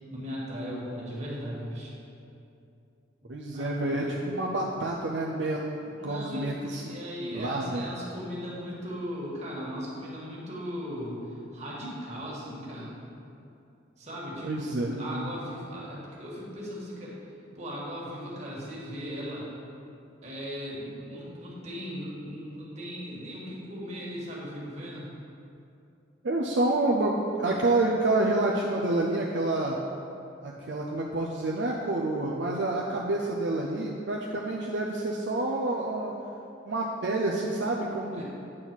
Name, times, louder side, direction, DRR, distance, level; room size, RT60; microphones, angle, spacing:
voice 1, 0.1-1.9 3.2-4.2 5.9-11.2 11.5-13.0 14.0-17.1 17.5-19.5 20.2-25.1 38.1-38.2, equal, 35° right, -5 dB, 1.9 m, -38 dB
voice 2, 3.3-7.0 7.3-7.9 14.4-15.3 26.2-29.8 30.4-36.1 36.7-38.2, right 2 dB, 65° right, -2 dB, 0.6 m, -28 dB
8.8 x 4.0 x 6.1 m, 2.6 s
head